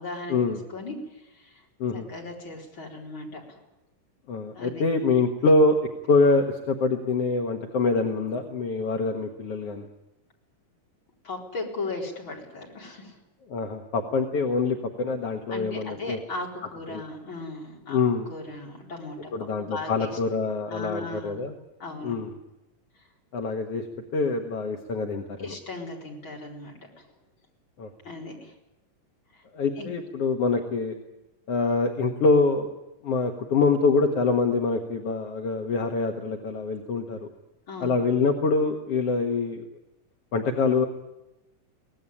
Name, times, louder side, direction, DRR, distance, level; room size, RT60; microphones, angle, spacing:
voice 1, 0.0-0.4 0.7-1.6 2.1-3.6 4.5-4.8 11.2-13.2 15.5-18.0 18.3-19.3 19.6-20.2 20.7-21.4 21.8-22.1 25.4-27.0 28.0-28.5 29.3-29.4 29.8-29.9 37.7-37.9, left 2 dB, 35° left, -1 dB, 5.0 m, -37 dB
voice 2, 4.3-5.8 6.1-9.9 13.5-16.2 16.9-17.0 17.9-18.3 19.3-21.6 22.0-22.3 23.3-23.8 24.1-25.5 27.8-27.9 29.5-31.0 31.5-32.7 33.0-37.3 37.8-39.6 40.3-40.9, left 3 dB, 55° left, 3 dB, 2.3 m, -25 dB
23.5 x 18.5 x 9.9 m, 0.95 s
omnidirectional pair, 3.7 m